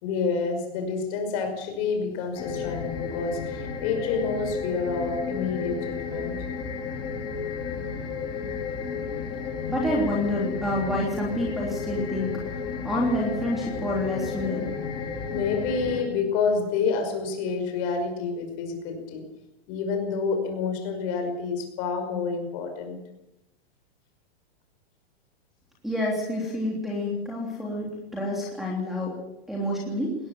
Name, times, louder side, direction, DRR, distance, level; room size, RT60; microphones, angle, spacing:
voice 1, 0.0-6.4 12.7-12.8 15.3-19.2 19.7-23.0, left 5 dB, 35° left, 5 dB, 5.4 m, -28 dB
sound 1, 2.3-16.0, left 5 dB, 15° left, 2.5 m, -32 dB
voice 2, 9.7-12.4 12.8-14.7 25.8-29.2 29.5-30.1, left 1 dB, ahead, -2 dB, 3.3 m, -28 dB
20.5 x 19.5 x 7.3 m, 0.88 s
hypercardioid pair, 170°, 32 cm